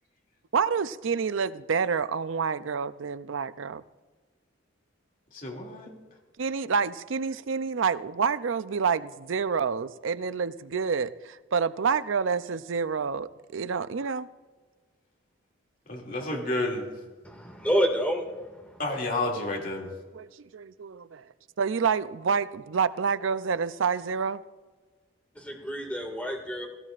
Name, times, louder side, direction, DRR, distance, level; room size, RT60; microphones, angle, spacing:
voice 1, 0.5-3.8 6.4-14.3 20.1-21.2 21.6-24.4, right 6 dB, 75° right, 14 dB, 0.5 m, -28 dB
voice 2, 5.3-5.9 15.9-16.9 18.8-19.9, left 2 dB, 45° left, 0 dB, 2.5 m, -30 dB
voice 3, 17.2-18.5 25.4-26.7, equal, 5° left, 1 dB, 2.1 m, -28 dB
17.0 x 17.0 x 2.5 m, 1.4 s
head